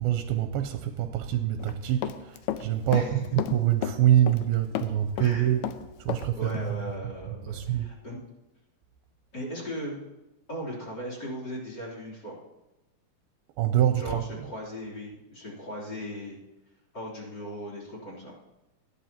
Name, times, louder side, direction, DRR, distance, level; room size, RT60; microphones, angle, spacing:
voice 1, 0.0-5.7 6.0-6.8 7.5-7.9 13.6-14.2, right 11 dB, 85° right, 2.5 m, -25 dB
Run, 1.6-2.7 2.9-4.5 4.8-6.3 6.5-6.7, left 12 dB, 80° left, 2.2 m, -32 dB
voice 2, 2.9-3.2 5.2-5.5 6.1-8.2 9.3-10.0 10.5-12.4 13.9-16.4 16.9-18.3, equal, 30° left, 3.5 m, -38 dB
18.0 x 13.0 x 2.9 m
omnidirectional pair, 4.4 m